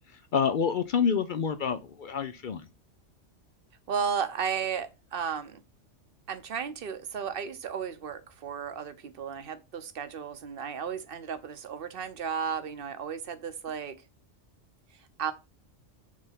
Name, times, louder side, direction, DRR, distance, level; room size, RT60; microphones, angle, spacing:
voice 1, 0.1-2.6, left 6 dB, 55° left, 0.6 m, -28 dB
voice 2, 3.9-5.6 6.3-14.0 15.2-15.3, right 7 dB, 55° right, 1.0 m, -34 dB
7.4 x 3.4 x 5.6 m
omnidirectional pair, 1.2 m